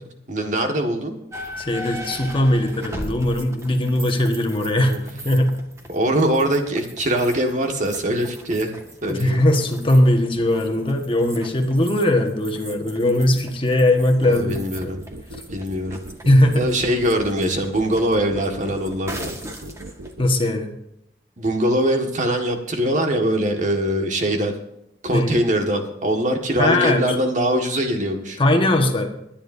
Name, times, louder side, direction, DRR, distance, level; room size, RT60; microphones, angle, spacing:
voice 1, 0.3-1.2 4.9-5.0 5.9-8.7 9.0-9.4 14.3-15.0 15.5-16.0 16.5-19.3 21.4-24.5 25.0-28.4, right 1 dB, 45° right, 4 dB, 1.8 m, -22 dB
sound 1, 1.3-20.1, equal, 15° right, 1.6 m, -39 dB
voice 2, 1.6-5.0 5.2-5.5 9.1-14.6 14.8-14.9 16.2-16.7 20.2-20.7 25.1-25.4 26.6-27.2 28.4-29.1, left 1 dB, 30° left, 4 dB, 1.5 m, -19 dB
sound 2, 14.4-20.3, right 1 dB, 85° right, 1.1 m, -38 dB
22.0 x 10.5 x 2.7 m, 0.81 s
head